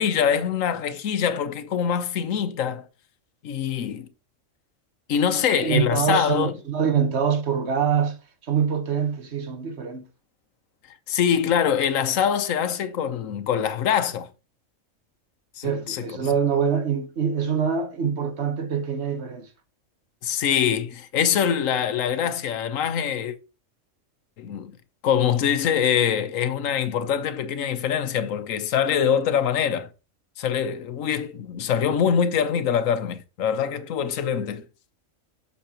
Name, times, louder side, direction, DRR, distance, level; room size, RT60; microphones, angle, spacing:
voice 1, 0.0-2.8 3.4-4.1 5.1-6.6 11.1-14.3 15.6-16.0 20.2-23.4 24.4-24.7 25.0-29.9 30.4-34.6, left 8 dB, 85° left, 1.2 m, -24 dB
voice 2, 5.6-10.0 15.6-19.5, right 7 dB, 60° right, 1.5 m, -25 dB
8.4 x 6.4 x 2.9 m
omnidirectional pair, 1.3 m